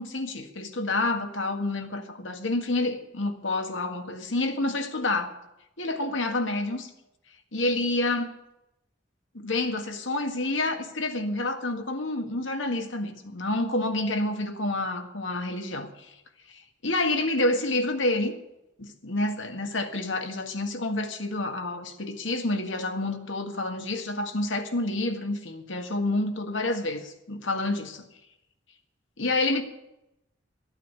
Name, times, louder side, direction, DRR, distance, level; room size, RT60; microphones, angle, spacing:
voice 1, 0.0-5.3 5.8-6.9 7.5-8.3 9.3-15.9 16.5-18.3 18.8-28.1 29.2-29.6, left 2 dB, 90° left, 1.8 m, -28 dB
13.0 x 9.1 x 9.5 m
head